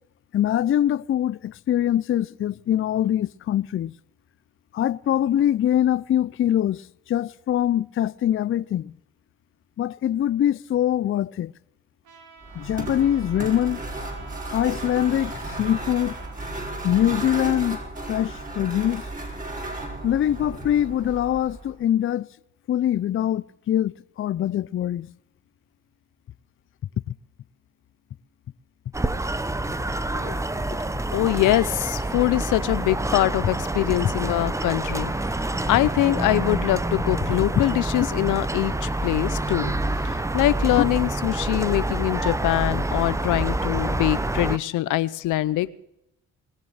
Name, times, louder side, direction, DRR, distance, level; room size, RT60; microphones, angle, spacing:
voice 1, 0.3-3.9 4.7-8.9 9.8-11.5 12.5-13.8 14.5-16.2 16.8-17.8 18.1-19.0 20.0-22.3 22.7-25.1 27.1-27.2 40.8-40.9, left 11 dB, 45° left, 0.5 m, -23 dB
Trumpet, 12.0-16.4, right 5 dB, 80° right, 4.1 m, -49 dB
sound 1, 12.4-21.8, right 2 dB, 25° right, 5.4 m, -34 dB
sound 2, 28.9-44.6, right 2 dB, 10° right, 0.8 m, -27 dB
voice 2, 31.1-39.7 40.0-45.7, left 16 dB, 90° left, 0.8 m, -24 dB
21.0 x 7.5 x 7.9 m
cardioid pair, 90°, 30 cm